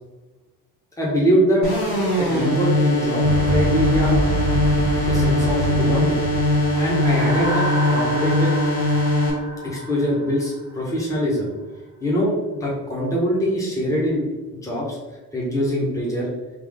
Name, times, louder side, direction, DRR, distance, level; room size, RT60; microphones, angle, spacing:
voice 1, 1.0-1.6 2.2-4.2 5.1-6.2 6.8-8.5 9.6-11.5 12.0-14.2 14.6-15.0 15.3-16.3, equal, 10° left, -5 dB, 1.5 m, -23 dB
sound 1, 1.6-9.3, left 1 dB, 65° left, 1.3 m, -21 dB
sound 2, 3.2-7.8, right 2 dB, 40° right, 0.7 m, -26 dB
sound 3, 6.5-11.0, equal, 10° right, 0.9 m, -31 dB
3.6 x 2.9 x 3.7 m, 1.2 s
supercardioid pair, 50°, 42 cm